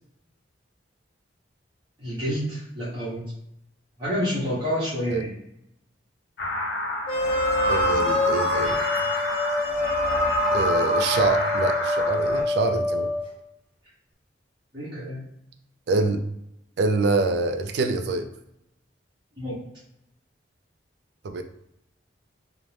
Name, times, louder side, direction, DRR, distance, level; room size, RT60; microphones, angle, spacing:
voice 1, 2.0-3.2 4.0-5.3 14.7-15.2 19.4-19.5, equal, 25° right, -11 dB, 0.8 m, -28 dB
sound 1, 6.4-12.4, left 1 dB, 70° left, 0.7 m, -27 dB
sound 2, 7.1-13.2, left 2 dB, 30° left, 0.4 m, -26 dB
voice 2, 7.7-8.8 10.5-13.1 15.9-16.2 16.8-18.3 21.2-21.4, right 3 dB, 60° right, 8 dB, 0.3 m, -25 dB
2.5 x 2.1 x 3.1 m, 0.81 s
head